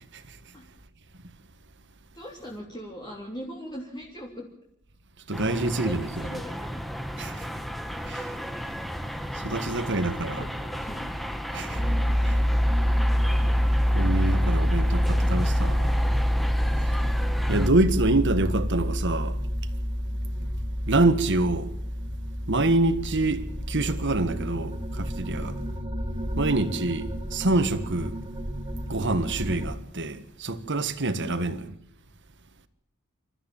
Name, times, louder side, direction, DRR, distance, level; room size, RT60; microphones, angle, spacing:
voice 1, 2.1-4.5 5.4-6.8 9.3-11.1 20.0-20.5 25.4-25.7 31.2-31.4, equal, 20° left, 3.4 m, -41 dB
sound 1, 5.3-17.7, equal, ahead, 1.3 m, -34 dB
voice 2, 5.3-6.4 7.2-7.4 8.1-8.2 9.4-10.4 11.5-11.8 12.2-12.4 13.9-16.0 17.5-19.4 20.9-21.7 22.5-25.6 26.4-28.1 28.9-31.6, right 2 dB, 55° right, 1.7 m, -26 dB
sound 2, 11.7-29.8, equal, 20° right, 2.0 m, -27 dB
27.5 x 14.0 x 7.2 m
head